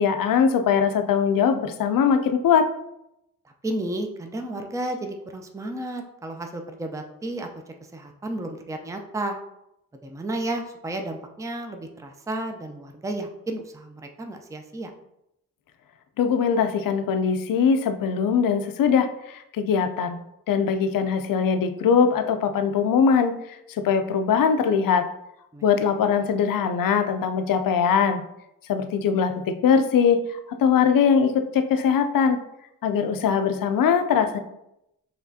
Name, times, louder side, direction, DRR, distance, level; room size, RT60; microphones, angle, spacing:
voice 1, 0.0-2.7 16.2-20.2 20.5-25.1 25.6-28.2 28.7-32.4 32.8-34.4, left 6 dB, 65° left, 8 dB, 0.5 m, -21 dB
voice 2, 3.6-7.5 7.9-9.4 10.0-14.9 25.5-25.6, right 1 dB, 10° right, 4 dB, 0.5 m, -32 dB
4.9 x 3.2 x 2.7 m, 0.83 s
supercardioid pair, 50°, 37 cm